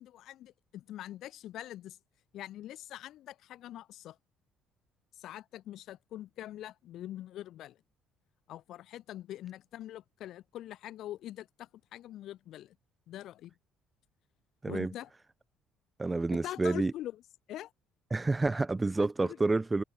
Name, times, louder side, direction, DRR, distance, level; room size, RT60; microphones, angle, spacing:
voice 1, 0.0-2.0 2.3-4.2 5.2-7.8 8.5-12.8 13.1-13.5 14.7-15.1 16.3-17.2 17.5-17.7 19.0-19.5, left 13 dB, 65° left, 5.4 m, -44 dB
voice 2, 16.0-16.9 18.1-19.8, right 3 dB, 15° right, 0.4 m, -29 dB
cardioid pair, 135°, 0 cm